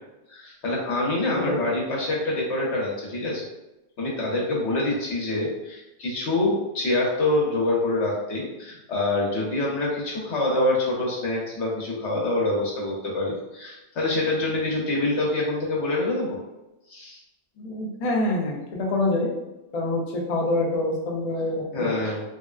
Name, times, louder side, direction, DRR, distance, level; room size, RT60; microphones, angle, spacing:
voice 1, 0.3-3.5 4.0-16.4 16.9-17.2 21.7-22.2, left 2 dB, 85° left, -3 dB, 1.2 m, -26 dB
voice 2, 17.6-18.6 18.9-19.3 19.7-21.9, left 2 dB, 45° left, -1 dB, 0.5 m, -26 dB
3.0 x 2.6 x 2.3 m, 0.97 s
omnidirectional pair, 1.2 m